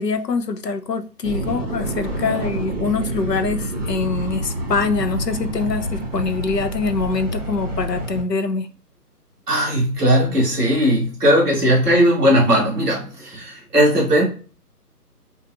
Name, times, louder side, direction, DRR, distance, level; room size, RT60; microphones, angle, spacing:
voice 1, 0.0-8.7, left 4 dB, 85° left, 0.7 m, -24 dB
sound 1, 1.2-8.2, right 1 dB, 25° right, 1.6 m, -28 dB
voice 2, 2.2-2.5 9.5-14.2, equal, 5° right, 0.9 m, -18 dB
5.5 x 2.5 x 2.5 m
figure-of-eight pair, 145°, 48 cm